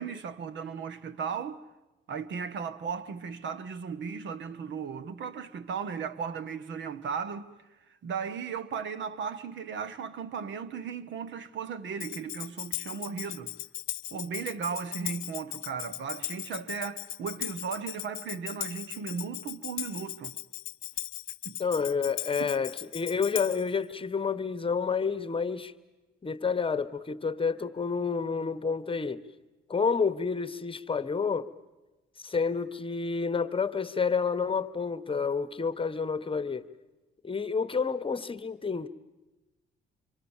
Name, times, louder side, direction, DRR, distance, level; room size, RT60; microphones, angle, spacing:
voice 1, 0.0-1.6 2.1-7.5 8.0-13.5 14.1-20.4 21.4-21.6 22.4-22.5, right 6 dB, 70° right, 1.2 m, -36 dB
Tambourine, 12.0-23.7, left 16 dB, 85° left, 0.8 m, -38 dB
voice 2, 21.6-25.7 26.2-29.2 29.7-31.5 32.2-36.6 37.2-38.9, left 5 dB, 25° left, 1.1 m, -29 dB
27.0 x 24.5 x 7.2 m
cardioid pair, 90°, 20 cm